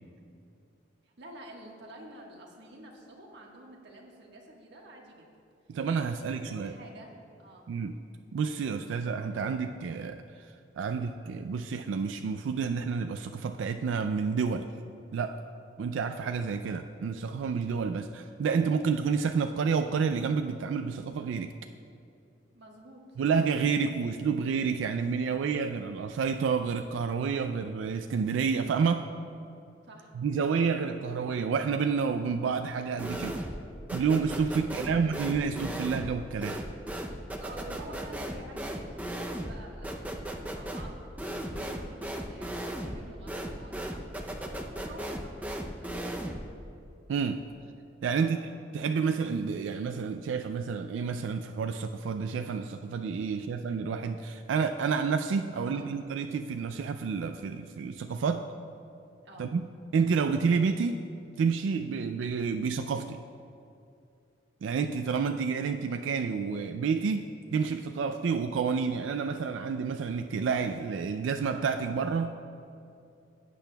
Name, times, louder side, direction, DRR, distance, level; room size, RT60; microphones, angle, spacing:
voice 1, 1.0-5.3 6.1-7.1 7.4-7.7 22.5-23.2 29.8-30.1 34.6-34.9 37.4-41.0 41.5-46.3 48.1-48.4 53.4-53.5 55.5-55.9 59.2-59.5, right 1 dB, 65° right, -1 dB, 1.4 m, -49 dB
voice 2, 5.7-6.7 7.7-7.9 8.3-14.7 15.1-15.4 15.8-21.5 23.2-29.0 30.1-33.4 33.9-36.6 47.1-47.4 48.0-58.4 59.4-59.6 59.9-61.0 61.4-63.2 64.6-67.3 67.5-72.4, right 5 dB, 85° right, 7 dB, 0.3 m, -29 dB
sound 1, 33.0-33.6 33.9-46.5, right 1 dB, 10° right, 0.5 m, -36 dB
16.0 x 8.5 x 2.3 m, 2.6 s
head